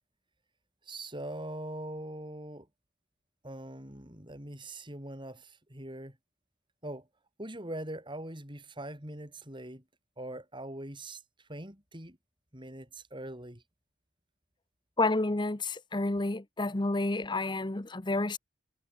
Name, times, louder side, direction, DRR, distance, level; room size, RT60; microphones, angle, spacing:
voice 1, 0.9-2.7 3.4-6.2 6.8-7.1 7.4-9.8 10.2-11.2 11.5-12.2 12.5-13.6, right 1 dB, 25° right, 7.3 m, -42 dB
voice 2, 15.0-18.4, left 2 dB, 25° left, 0.9 m, -30 dB
head